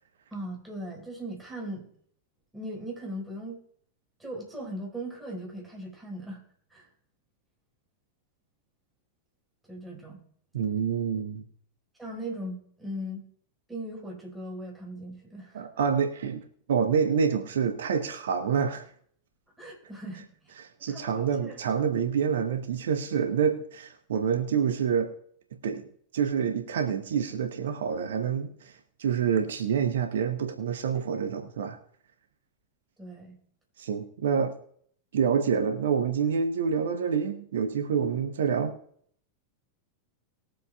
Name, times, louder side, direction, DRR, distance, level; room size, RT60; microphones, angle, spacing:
voice 1, 0.3-1.9 2.5-3.6 4.2-6.4 6.7-6.9 9.7-10.2 12.0-13.2 13.7-15.6 19.6-20.5 20.9-21.6 33.0-33.4, right 1 dB, 5° right, -4 dB, 4.5 m, -39 dB
voice 2, 10.5-11.4 15.5-18.9 20.6-25.1 25.6-25.9 26.1-31.8 33.8-34.6 35.1-38.8, right 7 dB, 60° right, 7 dB, 0.9 m, -27 dB
20.5 x 7.6 x 2.3 m, 0.63 s
figure-of-eight pair, 90°, 0 cm